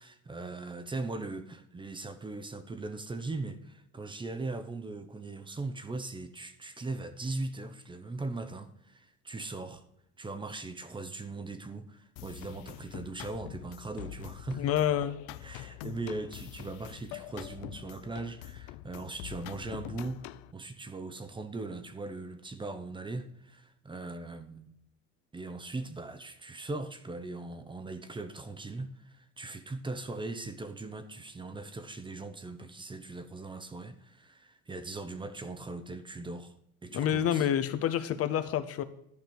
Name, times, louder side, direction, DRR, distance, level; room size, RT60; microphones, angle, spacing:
voice 1, 0.0-9.8 10.2-14.6 15.4-20.3 20.5-24.7 25.3-36.5 36.8-37.5, right 3 dB, 15° right, 0.8 m, -39 dB
sound 1, 12.2-20.5, left 15 dB, 80° left, 0.6 m, -45 dB
voice 2, 14.5-15.2 36.9-38.8, left 10 dB, 45° left, 0.8 m, -28 dB
12.0 x 5.2 x 5.9 m
cardioid pair, 120°, 32 cm